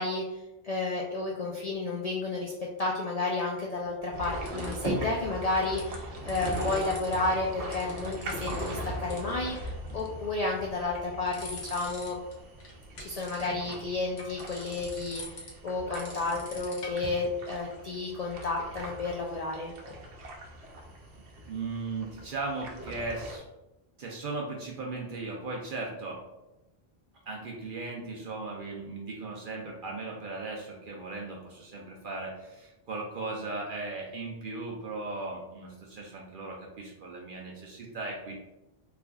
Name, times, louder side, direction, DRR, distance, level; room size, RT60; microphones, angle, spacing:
voice 1, 0.0-2.5 2.8-12.2 13.0-19.7, left 3 dB, 55° left, -2 dB, 0.4 m, -32 dB
sound 1, 3.7-5.0 5.5-5.9 6.1-7.1 7.4-8.8 9.1-9.2 9.5-10.2 10.7-12.3 12.6-17.2, left 2 dB, 80° left, 1.1 m, -45 dB
sound 2, 4.1-23.4, right 1 dB, 85° right, 1.0 m, -40 dB
voice 2, 21.4-23.4 24.0-26.2 27.3-38.3, right 3 dB, 60° right, -1 dB, 0.7 m, -37 dB
3.5 x 3.4 x 2.2 m, 0.96 s
omnidirectional pair, 1.1 m